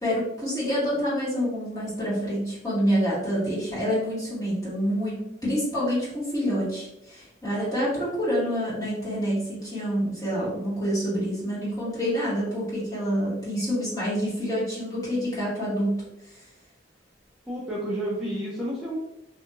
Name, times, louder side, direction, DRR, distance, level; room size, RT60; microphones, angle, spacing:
voice 1, 0.0-16.0, equal, 20° left, -9 dB, 1.5 m, -27 dB
voice 2, 17.5-19.0, right 1 dB, ahead, -8 dB, 0.5 m, -30 dB
2.6 x 2.4 x 2.7 m, 0.83 s
head